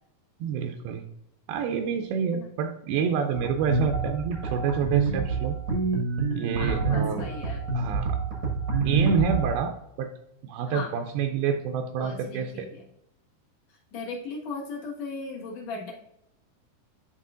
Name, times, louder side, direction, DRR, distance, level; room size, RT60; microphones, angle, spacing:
voice 1, 0.4-1.0 1.5-5.6 6.3-7.2 7.7-8.2 8.9-10.1 10.4-12.7, right 6 dB, 85° right, 4 dB, 2.5 m, -28 dB
sound 1, 3.4-9.6, right 4 dB, 60° right, 1.4 m, -27 dB
voice 2, 6.6-7.6 10.7-10.9 12.0-12.8 13.7-15.9, left 3 dB, 55° left, -2 dB, 2.3 m, -37 dB
11.0 x 4.1 x 2.5 m, 0.79 s
omnidirectional pair, 4.4 m